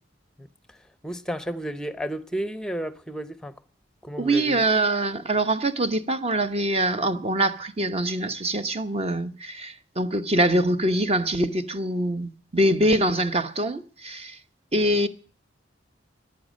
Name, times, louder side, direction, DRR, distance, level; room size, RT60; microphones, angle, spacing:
voice 1, 0.4-0.8 1.0-3.6 4.0-4.7, right 1 dB, 5° left, 0.7 m, -32 dB
voice 2, 4.2-14.4 14.7-15.1, right 1 dB, 35° right, 1.0 m, -24 dB
14.5 x 10.5 x 6.3 m
head